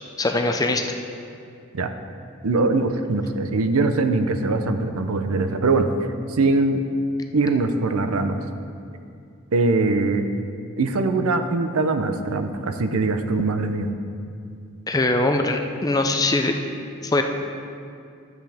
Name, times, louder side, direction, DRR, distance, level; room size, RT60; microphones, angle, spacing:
voice 1, 0.2-0.9 14.9-16.6 17.0-17.2, left 2 dB, 15° left, 4 dB, 0.4 m, -21 dB
voice 2, 2.4-5.9 6.3-6.8 7.3-8.4 9.5-10.2 10.8-13.9, right 3 dB, 80° right, 8 dB, 0.6 m, -22 dB
12.5 x 7.6 x 3.5 m, 2.4 s
head